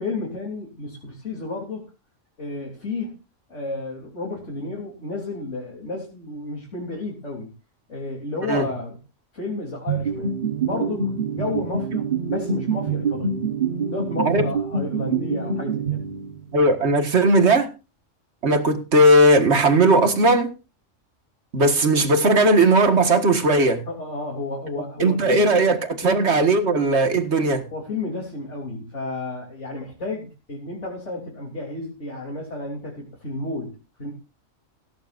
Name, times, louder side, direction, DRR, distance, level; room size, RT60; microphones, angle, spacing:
voice 1, 0.0-1.8 2.4-3.2 3.5-7.5 7.9-9.0 9.3-10.3 10.6-13.4 13.9-16.0 23.9-25.5 26.0-26.2 27.7-34.1, left 2 dB, 65° left, 3.9 m, -32 dB
sound 1, 9.9-16.6, right 5 dB, 45° right, 1.3 m, -26 dB
voice 2, 16.5-17.7 18.4-20.5 21.5-23.8 25.0-27.6, right 2 dB, 60° right, 2.0 m, -17 dB
17.0 x 14.0 x 2.6 m
omnidirectional pair, 1.3 m